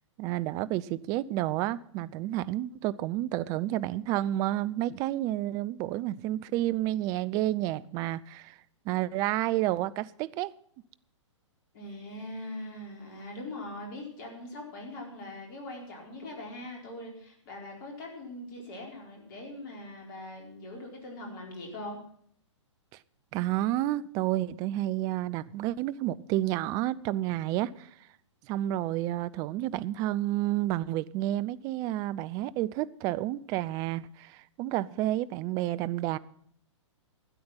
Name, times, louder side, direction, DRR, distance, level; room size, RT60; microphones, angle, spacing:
voice 1, 0.2-8.5 8.9-10.5 23.3-27.9 28.5-36.2, right 14 dB, 20° right, 0.4 m, -30 dB
voice 2, 11.7-22.0, left 1 dB, 40° left, 4.4 m, -41 dB
12.5 x 9.4 x 5.9 m
figure-of-eight pair, 120°, 16 cm